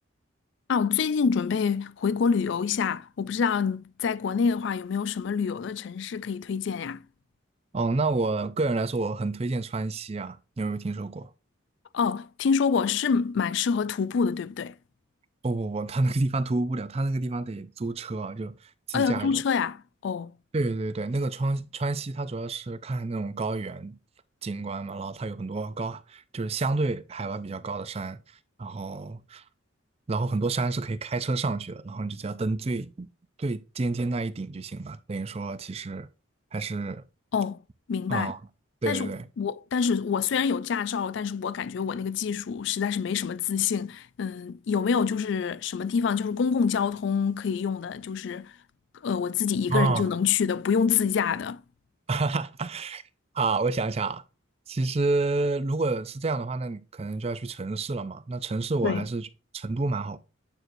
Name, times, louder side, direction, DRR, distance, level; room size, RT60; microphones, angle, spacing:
voice 1, 0.7-7.0 11.9-14.7 18.9-20.3 37.3-37.6 37.9-38.3 38.9-48.6 49.0-51.6 58.8-59.0, left 6 dB, 60° left, 0.3 m, -26 dB
voice 2, 7.7-11.3 15.4-19.4 20.5-24.0 24.4-28.2 28.6-29.4 30.1-33.1 33.4-36.1 36.5-37.0 38.1-38.4 38.8-39.3 49.7-50.1 52.1-53.0 53.3-54.2 54.7-59.3 59.5-60.2, right 3 dB, 30° right, 0.4 m, -29 dB
8.9 x 4.6 x 2.6 m
head